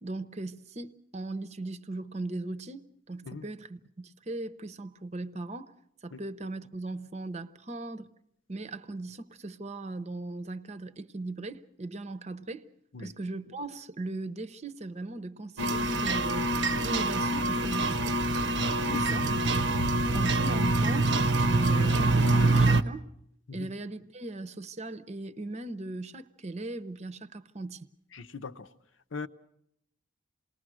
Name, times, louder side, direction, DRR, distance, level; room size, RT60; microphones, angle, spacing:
voice 1, 0.0-5.7 6.0-8.1 8.5-12.6 13.0-16.5 16.8-18.1 18.8-19.4 20.1-21.2 21.5-23.1 23.5-27.9, right 2 dB, 35° right, 0.8 m, -38 dB
sound 1, 15.6-22.8, right 2 dB, 60° right, 0.8 m, -25 dB
voice 2, 28.1-28.7 29.1-29.3, left 4 dB, 70° left, 0.9 m, -39 dB
28.0 x 20.0 x 6.3 m
head